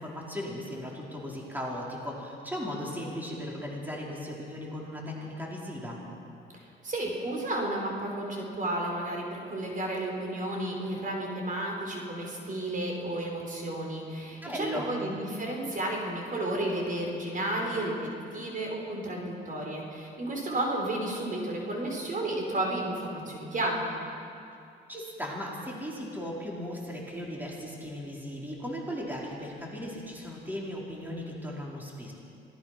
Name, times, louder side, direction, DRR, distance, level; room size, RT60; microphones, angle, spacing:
voice 1, 0.0-6.0 14.4-14.9 24.9-32.1, equal, 10° right, -3 dB, 4.7 m, -37 dB
voice 2, 6.5-23.8, right 1 dB, 40° right, 0 dB, 4.9 m, -32 dB
26.0 x 18.5 x 6.0 m, 2.5 s
cardioid pair, 90°, 20 cm